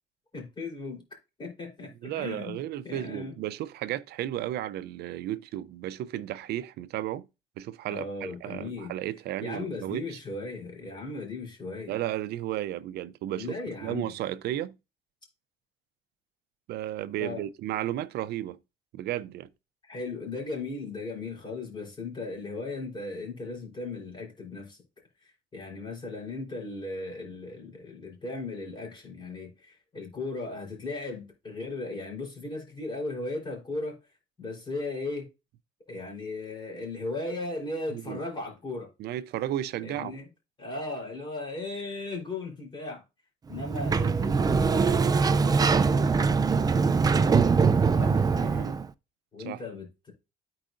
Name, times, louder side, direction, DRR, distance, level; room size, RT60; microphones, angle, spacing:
voice 1, 0.3-1.0 1.4-2.6 2.8-3.4 7.9-8.9 9.4-11.9 13.3-14.1 17.2-17.4 19.8-24.8 25.2-34.0 34.4-35.3 35.9-38.9 39.8-40.3 40.6-43.0 43.5-46.1 46.6-48.7 49.3-50.1, left 3 dB, 30° left, 3.8 m, -37 dB
voice 2, 2.0-7.3 7.6-10.2 11.9-14.8 16.7-18.6 18.9-19.5 37.9-38.2 39.0-40.1 48.4-48.8 49.4-49.6, right 12 dB, 70° right, 0.6 m, -34 dB
Sliding door, 43.5-48.9, right 5 dB, 20° right, 0.4 m, -23 dB
13.0 x 4.8 x 2.6 m
cardioid pair, 110°, 17 cm